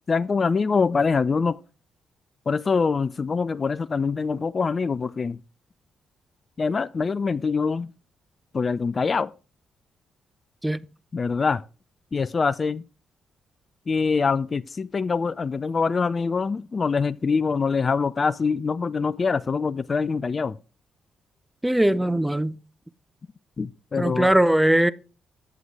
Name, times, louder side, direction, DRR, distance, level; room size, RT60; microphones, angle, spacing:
voice 1, 0.1-1.6 2.5-5.4 6.6-7.9 8.5-9.3 11.1-11.6 12.1-12.8 13.9-20.6 23.6-24.3, left 5 dB, 40° left, 0.4 m, -24 dB
voice 2, 21.6-22.6 24.0-24.9, right 1 dB, 10° right, 0.6 m, -20 dB
9.2 x 7.8 x 3.4 m
hypercardioid pair, 40°, 0 cm